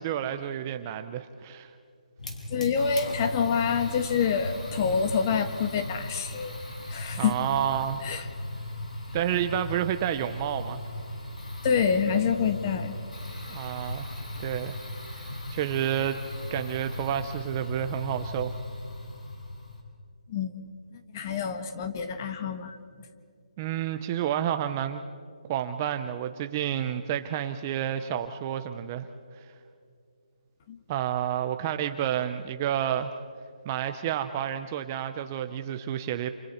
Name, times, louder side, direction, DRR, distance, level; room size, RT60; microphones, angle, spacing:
voice 1, 0.0-1.7 7.2-8.0 9.1-10.8 13.5-14.1 14.4-14.8 15.1-16.2 16.5-18.5 23.6-25.0 25.5-29.1 30.9-33.1 33.7-36.3, right 10 dB, 20° right, 9 dB, 0.5 m, -30 dB
Fire, 2.2-19.8, left 1 dB, 70° left, 6.1 m, -38 dB
voice 2, 2.5-6.6 6.9-7.4 8.0-8.2 11.6-12.9 20.3-20.5 21.1-22.8 30.7-30.8, left 6 dB, 25° left, 8 dB, 1.3 m, -27 dB
29.0 x 28.5 x 4.3 m, 2.4 s
hypercardioid pair, 170°, 4 cm